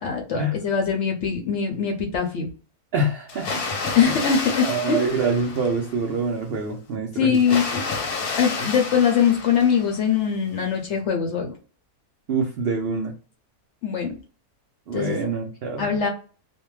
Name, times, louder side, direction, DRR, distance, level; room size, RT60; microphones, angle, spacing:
voice 1, 0.0-2.5 3.9-5.0 7.1-7.8 8.4-11.5 13.8-14.1 14.9-15.2 15.8-16.1, left 7 dB, 65° left, 2 dB, 0.8 m, -22 dB
voice 2, 2.9-4.2 4.6-7.6 12.3-13.1 14.9-15.9, right 3 dB, 90° right, 2 dB, 0.5 m, -26 dB
Water, 3.3-6.1 7.3-10.1, left 4 dB, 85° left, 1.3 m, -30 dB
2.6 x 2.1 x 3.0 m, 0.38 s
omnidirectional pair, 1.6 m